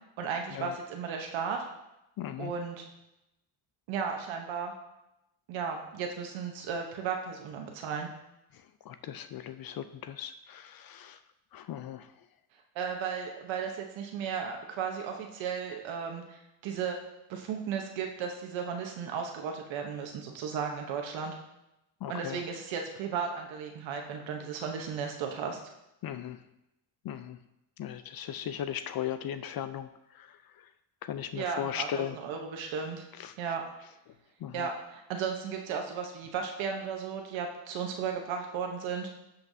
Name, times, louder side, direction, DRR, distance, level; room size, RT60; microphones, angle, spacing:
voice 1, 0.2-1.7 2.4-2.8 3.9-4.7 5.5-8.1 12.7-17.0 17.3-21.4 22.1-25.6 31.3-33.0 33.4-33.6 34.5-39.1, right 6 dB, 75° right, 2 dB, 1.1 m, -35 dB
voice 2, 2.2-2.5 8.9-11.2 11.5-12.1 22.0-22.4 26.0-26.4 27.0-27.4 27.8-29.9 30.2-30.3 31.0-32.2 33.2-33.3 34.4-34.7, left 10 dB, 50° left, 11 dB, 0.5 m, -37 dB
11.5 x 5.7 x 2.7 m, 0.89 s
cardioid pair, 110°, 46 cm